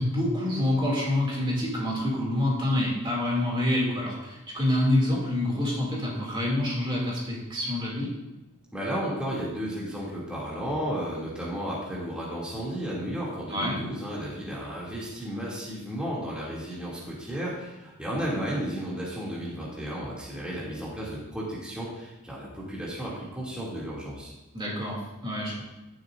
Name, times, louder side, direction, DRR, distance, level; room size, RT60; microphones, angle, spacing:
voice 1, 0.0-8.1 13.5-13.8 24.5-25.6, left 1 dB, 25° right, -4 dB, 2.7 m, -27 dB
voice 2, 8.7-24.3, equal, 5° right, -7 dB, 2.6 m, -33 dB
16.5 x 7.7 x 2.6 m, 1.0 s
head